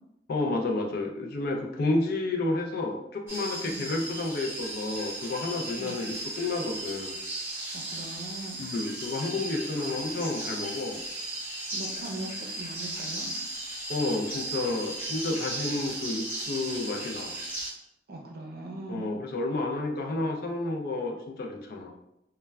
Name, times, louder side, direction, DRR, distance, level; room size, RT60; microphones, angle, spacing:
voice 1, 0.3-7.1 8.6-11.0 13.9-17.3 18.9-21.9, left 2 dB, 55° left, 2 dB, 0.4 m, -30 dB
sound 1, 3.3-17.7, right 2 dB, 15° right, 1.1 m, -36 dB
voice 2, 5.8-6.1 7.7-8.7 11.7-13.3 18.1-19.0, right 2 dB, 60° right, 1 dB, 0.5 m, -40 dB
3.1 x 2.1 x 2.2 m, 0.84 s
head